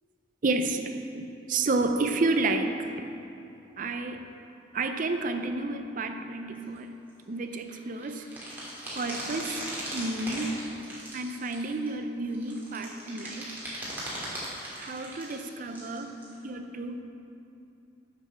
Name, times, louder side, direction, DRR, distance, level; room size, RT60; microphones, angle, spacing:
voice 1, 0.4-3.0 3.8-4.3 4.7-6.9 7.3-8.3 9.0-10.7 11.1-13.5 14.8-16.2 16.4-17.0, right 2 dB, 45° right, 7 dB, 0.5 m, -31 dB
sound 1, 6.8-6.9 7.1-7.2 7.7-11.9 12.3-16.3, right 1 dB, 10° right, 2.2 m, -38 dB
7.4 x 6.9 x 5.8 m, 2.8 s
head